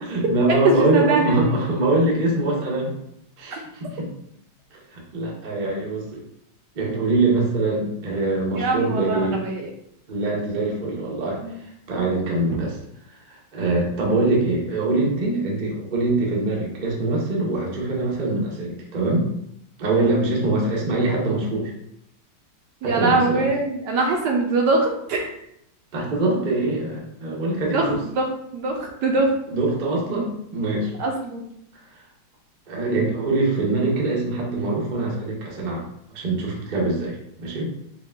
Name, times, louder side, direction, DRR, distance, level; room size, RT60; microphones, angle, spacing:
voice 1, 0.0-2.9 3.4-4.1 4.7-6.2 6.7-9.4 10.1-11.4 11.9-12.8 13.3-19.2 19.8-21.7 22.8-23.5 25.9-28.0 29.5-30.9 32.7-35.8 36.1-37.7, right 2 dB, 55° right, -2 dB, 0.5 m, -23 dB
voice 2, 0.6-1.5 8.6-9.7 11.4-11.6 12.5-12.6 22.8-25.3 27.7-28.3 28.5-29.3 31.0-31.4, right 3 dB, 70° right, 1 dB, 1.1 m, -22 dB
4.7 x 2.2 x 3.3 m, 0.74 s
omnidirectional pair, 2.2 m